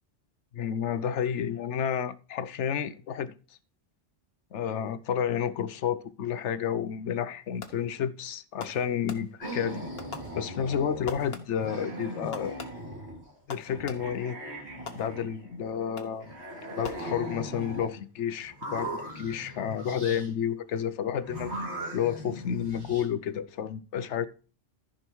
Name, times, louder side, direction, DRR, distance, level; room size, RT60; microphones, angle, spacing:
voice 1, 0.5-3.3 4.5-9.8 10.3-12.5 13.5-14.4 14.9-16.3 16.7-21.6 21.9-24.3, left 8 dB, 85° left, 1.1 m, -31 dB
Fireworks, 7.6-8.0 8.6-9.6 10.0-10.8 11.1-11.8 12.3-14.3 14.9-15.5 16.0-16.4 16.8-17.6, left 5 dB, 60° left, 1.4 m, -45 dB
sound 1, 9.4-11.3 11.5-13.3 13.7-15.7 16.2-17.9 18.5-20.3 21.2-23.0, right 1 dB, 65° right, 3.3 m, -39 dB
14.0 x 5.4 x 4.5 m
omnidirectional pair, 1.2 m